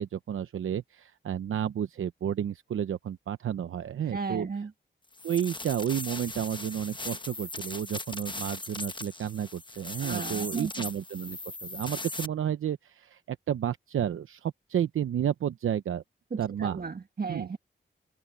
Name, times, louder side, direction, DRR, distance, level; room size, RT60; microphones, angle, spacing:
voice 1, 0.0-4.5 5.2-16.0 16.4-16.8 17.3-17.5, right 9 dB, 90° right, 0.7 m, -31 dB
voice 2, 4.1-4.7 10.0-10.7 16.3-17.6, right 4 dB, 45° right, 1.4 m, -35 dB
sound 1, 5.1-12.3, left 2 dB, 25° left, 1.2 m, -39 dB
open air
cardioid pair, 50°, 20 cm